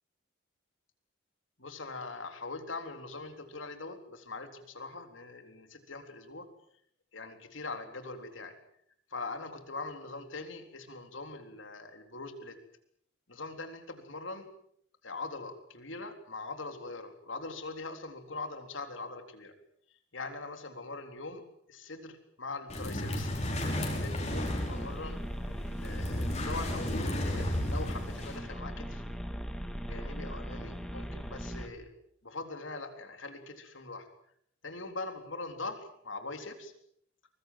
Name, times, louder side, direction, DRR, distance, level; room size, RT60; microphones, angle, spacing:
voice 1, 1.6-6.5 7.1-8.6 9.1-12.6 13.3-14.5 15.0-19.5 20.1-23.3 23.9-29.0 29.9-31.9 32.2-34.1 34.6-36.7, left 3 dB, 70° left, 7 dB, 3.9 m, -42 dB
sound 1, 22.7-28.4, left 1 dB, 35° left, 5.6 m, -34 dB
sound 2, 24.3-31.7, equal, ahead, 2.3 m, -39 dB
24.0 x 21.5 x 7.7 m, 0.68 s
head